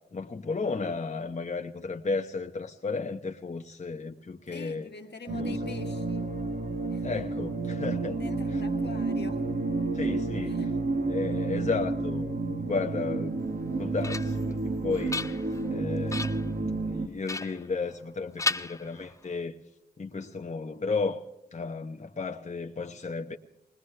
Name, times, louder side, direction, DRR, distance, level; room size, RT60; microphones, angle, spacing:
voice 1, 0.1-4.9 5.3-5.7 7.0-8.2 9.9-10.6 11.0-13.4 13.8-19.6 20.0-21.2 21.5-23.4, left 4 dB, 40° left, 0.9 m, -33 dB
voice 2, 4.5-6.3 6.9-7.1 8.2-9.4 10.5-10.7, left 4 dB, 80° left, 1.6 m, -44 dB
sound 1, 5.3-17.1, right 3 dB, 55° right, 1.2 m, -30 dB
sound 2, 13.5-14.5 14.9-15.7 16.1-16.5 17.3-18.1 18.4-19.3, left 2 dB, 15° left, 0.5 m, -34 dB
21.0 x 19.5 x 3.3 m
wide cardioid pair, 65°, 18 cm